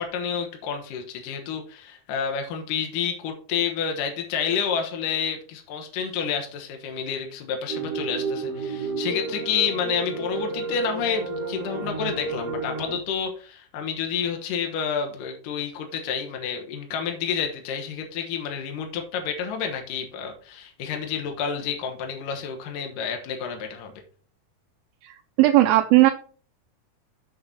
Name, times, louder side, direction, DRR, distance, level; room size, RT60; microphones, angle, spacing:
voice 1, 0.0-23.9, left 7 dB, 70° left, 3 dB, 2.6 m, -29 dB
sound 1, 7.7-13.0, right 3 dB, 40° right, 1.0 m, -31 dB
voice 2, 25.4-26.1, right 16 dB, 85° right, 4 dB, 2.4 m, -16 dB
7.7 x 6.6 x 4.2 m, 0.41 s
omnidirectional pair, 4.2 m